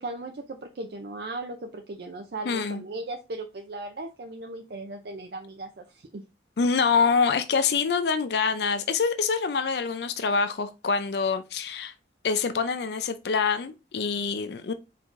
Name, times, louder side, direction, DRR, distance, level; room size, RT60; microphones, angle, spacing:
voice 1, 0.0-6.2, right 2 dB, 60° right, 0.5 m, -37 dB
voice 2, 2.5-2.8 6.6-11.9 12.2-14.7, left 5 dB, 65° left, 0.4 m, -25 dB
4.6 x 4.2 x 2.5 m
head